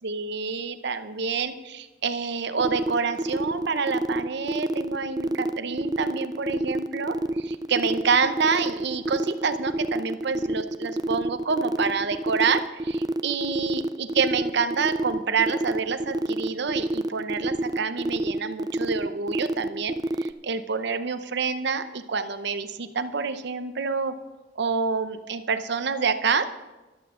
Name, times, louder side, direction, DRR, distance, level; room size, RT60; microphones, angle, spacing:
voice 1, 0.0-24.1 24.6-26.5, right 5 dB, 65° right, 10 dB, 0.8 m, -27 dB
sound 1, 2.6-20.3, right 1 dB, 20° right, 0.4 m, -27 dB
14.0 x 11.5 x 3.8 m, 1.1 s
head